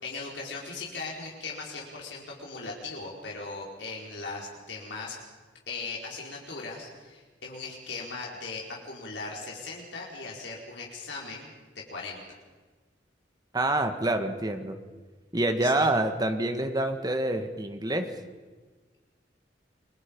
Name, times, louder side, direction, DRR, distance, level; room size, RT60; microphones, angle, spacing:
voice 1, 0.0-5.1 5.7-11.5 11.7-12.4 15.6-15.9, left 3 dB, 85° left, -2 dB, 4.6 m, -38 dB
voice 2, 13.5-14.8 15.3-18.1, right 1 dB, 20° right, 7 dB, 1.7 m, -27 dB
28.5 x 23.5 x 5.4 m, 1.3 s
head